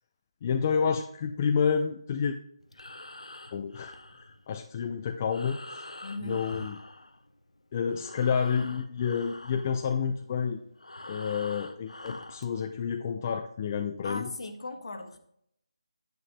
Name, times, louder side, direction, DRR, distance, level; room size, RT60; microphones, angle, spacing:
voice 1, 0.4-2.4 3.5-5.9 6.2-6.8 7.7-10.6 11.1-14.3, left 6 dB, 25° left, 5 dB, 0.5 m, -29 dB
Breathing, 2.6-7.6 7.9-12.5, left 2 dB, 85° left, 0.8 m, -45 dB
voice 2, 6.0-6.4 14.0-15.2, left 2 dB, 60° left, 6 dB, 1.4 m, -38 dB
10.5 x 9.8 x 2.2 m, 0.71 s
figure-of-eight pair, 160°, 3 cm